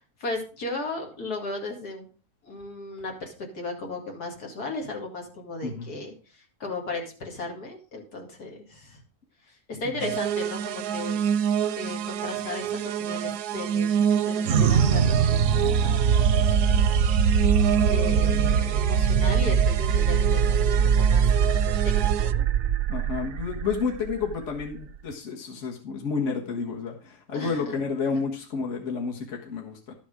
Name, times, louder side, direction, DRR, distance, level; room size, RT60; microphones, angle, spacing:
voice 1, 0.0-2.1 2.4-9.0 9.4-11.2 11.8-13.9 14.2-16.8 17.3-17.6 17.9-22.4 27.3-27.7, left 2 dB, 80° left, 1 dB, 2.7 m, -36 dB
sound 1, 10.0-22.3, right 8 dB, 85° right, 1.2 m, -28 dB
sound 2, 14.4-25.1, right 7 dB, 60° right, 0.8 m, -22 dB
voice 2, 22.9-29.9, left 5 dB, 50° left, 1 dB, 1.9 m, -30 dB
12.0 x 7.1 x 4.9 m, 0.37 s
omnidirectional pair, 1.6 m